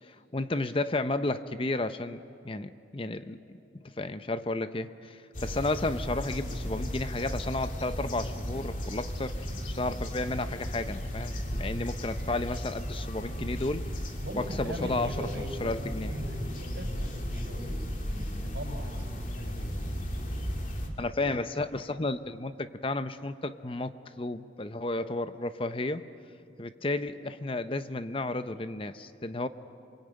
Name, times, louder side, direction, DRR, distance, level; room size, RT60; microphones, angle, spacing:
voice 1, 0.0-3.6 4.0-13.9 14.4-16.2 21.0-26.1 26.6-29.5, left 2 dB, 30° left, 11 dB, 0.6 m, -33 dB
sound 1, 5.3-20.9, equal, 45° left, 2.7 m, -35 dB
voice 2, 14.2-19.7, equal, 70° right, 2 dB, 5.9 m, -40 dB
27.5 x 23.0 x 8.9 m, 2.5 s
head